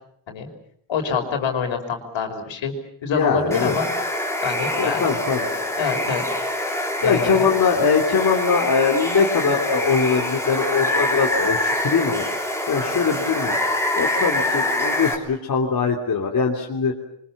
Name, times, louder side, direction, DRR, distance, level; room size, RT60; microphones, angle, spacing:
voice 1, 0.9-2.7 3.0-3.9 4.4-5.0 5.3-6.2 7.0-7.5, left 6 dB, 65° left, 5 dB, 5.4 m, -26 dB
voice 2, 3.1-3.8 4.8-5.5 7.0-13.6 14.0-16.9, left 5 dB, 45° left, 0 dB, 3.3 m, -22 dB
Water, 3.5-15.2, left 1 dB, 5° left, 3.8 m, -25 dB
28.0 x 25.0 x 7.4 m, 0.69 s
cardioid pair, 150°, 48 cm